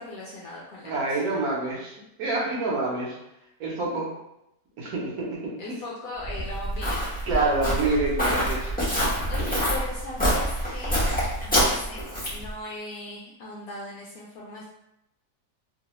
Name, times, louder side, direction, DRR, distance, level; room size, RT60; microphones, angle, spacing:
voice 1, 0.0-1.2 5.6-7.1 9.3-11.0 11.4-14.6, left 2 dB, 70° left, -3 dB, 0.8 m, -39 dB
voice 2, 0.8-3.2 3.6-4.1 4.8-5.5 7.3-9.0 9.4-9.5, right 3 dB, 65° right, -4 dB, 1.2 m, -27 dB
Walk footsteps, 6.2-12.5, equal, 10° left, 0.5 m, -26 dB
3.0 x 2.3 x 2.9 m, 0.85 s
omnidirectional pair, 1.9 m